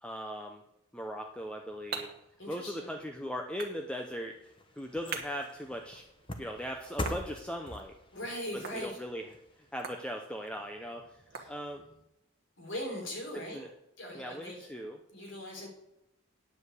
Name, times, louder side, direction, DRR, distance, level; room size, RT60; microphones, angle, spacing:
voice 1, 0.0-0.6 0.9-2.1 2.5-6.0 6.4-8.0 8.5-11.8 13.3-13.7 14.1-15.0, equal, 5° left, 3 dB, 0.6 m, -39 dB
sound 1, 1.2-12.1, right 5 dB, 45° right, 1.3 m, -47 dB
voice 2, 2.4-2.9 8.1-9.0 11.3-11.5 12.6-13.6 14.0-14.7 15.1-15.7, equal, 65° left, 0 dB, 3.6 m, -40 dB
sound 2, 4.0-10.5 10.9-11.0, left 1 dB, 25° left, 1.0 m, -44 dB
9.7 x 5.2 x 8.1 m, 0.87 s
head